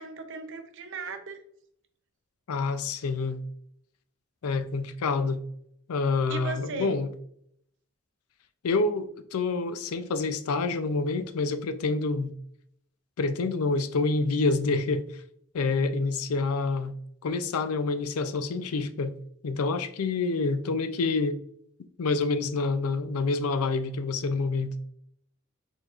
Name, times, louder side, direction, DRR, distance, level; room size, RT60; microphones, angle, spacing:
voice 1, 0.0-1.4 6.3-6.9, right 4 dB, 60° right, 0.7 m, -36 dB
voice 2, 2.5-3.4 4.4-5.4 5.9-7.1 8.6-12.3 13.2-15.2 15.5-17.0 17.2-19.1 19.4-21.4 22.0-24.7, left 3 dB, 90° left, 0.4 m, -27 dB
4.7 x 3.9 x 2.4 m
head